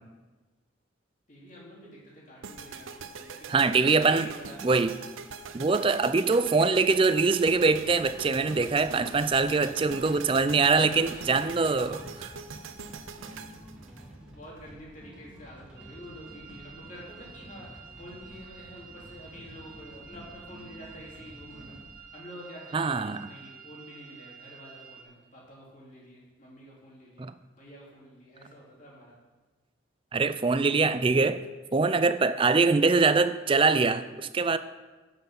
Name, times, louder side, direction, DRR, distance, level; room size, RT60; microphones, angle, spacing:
voice 1, 1.3-4.6 9.3-11.8 14.3-27.3 27.5-29.2, equal, 40° left, 3.0 m, -48 dB
sound 1, 2.4-14.6, right 5 dB, 75° right, 0.6 m, -43 dB
voice 2, 3.5-4.3 4.6-5.0 5.5-12.3 22.7-23.3 27.2-27.3 30.1-31.4 31.7-34.6, right 4 dB, 25° right, 0.4 m, -23 dB
sound 2, 7.4-22.0, equal, 5° right, 1.7 m, -50 dB
sound 3, 15.8-25.0, right 7 dB, 45° right, 1.4 m, -50 dB
9.1 x 7.9 x 5.8 m
head